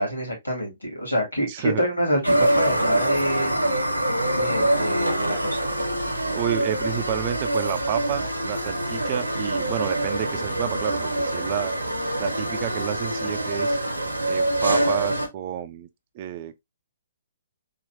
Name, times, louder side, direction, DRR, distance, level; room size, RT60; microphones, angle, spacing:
voice 1, 0.0-3.6 4.3-5.7, equal, 90° left, 2.2 m, -26 dB
voice 2, 1.5-1.8 6.3-11.7 12.2-13.8 14.3-15.9 16.1-16.6, right 11 dB, 40° right, 0.5 m, -30 dB
sound 1, 2.2-15.3, right 1 dB, 90° right, 0.9 m, -25 dB
4.0 x 3.0 x 2.6 m
figure-of-eight pair, 125°, 0 cm